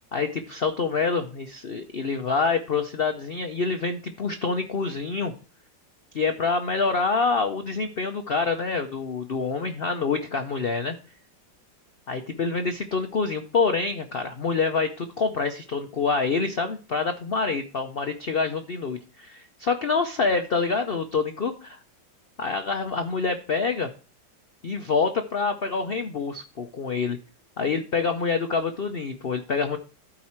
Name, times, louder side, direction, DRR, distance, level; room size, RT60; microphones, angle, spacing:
voice 1, 0.1-5.3 6.1-10.9 12.1-21.8 22.4-23.9 24.6-27.2 27.6-29.8, left 4 dB, 70° left, 7 dB, 0.5 m, -26 dB
13.0 x 4.8 x 4.4 m, 0.36 s
omnidirectional pair, 2.0 m